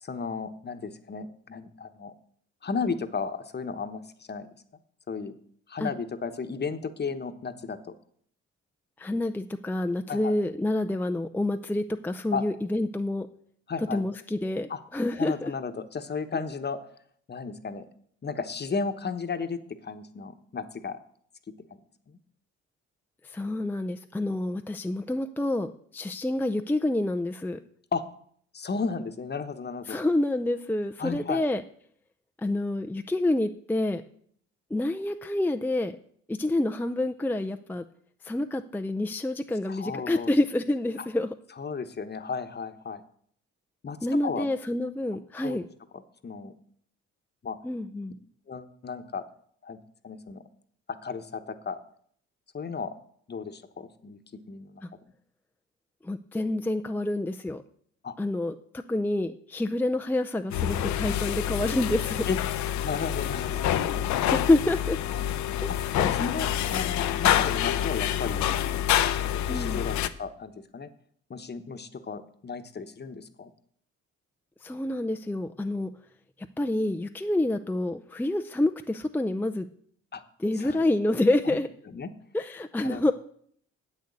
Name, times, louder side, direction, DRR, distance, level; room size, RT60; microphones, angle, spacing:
voice 1, 0.0-2.1 2.6-4.0 4.3-4.5 5.1-5.3 5.7-7.8 10.1-10.3 12.3-12.4 13.7-14.0 14.7-14.8 15.2-16.8 17.3-17.9 18.2-21.0 21.7-21.8 22.1-22.2 27.9-28.0 28.5-30.0 31.0-31.4 39.7-40.3 41.0-41.1 41.6-43.0 43.8-44.0 44.2-44.5 45.4-45.6 45.9-46.5 47.4-47.6 48.5-49.2 49.6-49.8 50.0-50.4 51.0-51.8 52.5-52.9 53.3-54.2 54.5-54.8 58.0-58.1 62.3-62.4 62.8-64.0 65.7-68.4 69.3-70.9 71.3-73.5 80.1-80.2 80.6-80.8 81.5-81.6 81.9-82.1 82.8-83.0, left 5 dB, 35° left, 9 dB, 1.1 m, -34 dB
voice 2, 9.0-13.3 13.9-15.5 23.2-27.6 29.9-31.6 32.4-34.0 34.7-35.9 36.3-37.8 38.2-41.3 44.0-45.7 47.6-48.2 56.0-57.6 58.2-58.5 58.9-62.2 64.3-65.0 65.6-65.7 69.5-69.8 74.6-75.9 76.6-79.7 80.4-81.7 82.3-83.1, left 1 dB, 5° left, 6 dB, 0.5 m, -28 dB
sound 1, 60.5-70.1, left 11 dB, 75° left, 0.7 m, -27 dB
8.2 x 6.5 x 8.3 m, 0.63 s
supercardioid pair, 65°, 29 cm